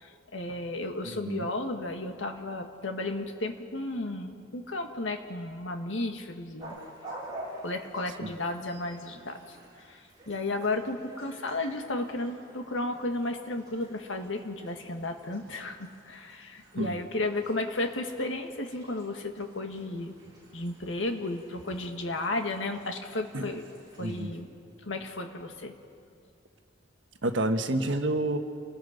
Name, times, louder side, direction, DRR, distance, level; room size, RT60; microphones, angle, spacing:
voice 1, 0.0-6.8 7.6-20.1 20.5-23.6 24.0-24.5 24.8-25.7, left 2 dB, 90° left, 5 dB, 1.8 m, -33 dB
voice 2, 1.0-1.4 8.2-8.3 16.8-17.0 23.3-23.4 24.0-24.3 27.2-28.4, right 1 dB, 75° right, 7 dB, 1.4 m, -29 dB
sound 1, 6.6-24.2, right 1 dB, 20° right, 7.7 m, -49 dB
29.0 x 20.0 x 5.2 m, 2.3 s
head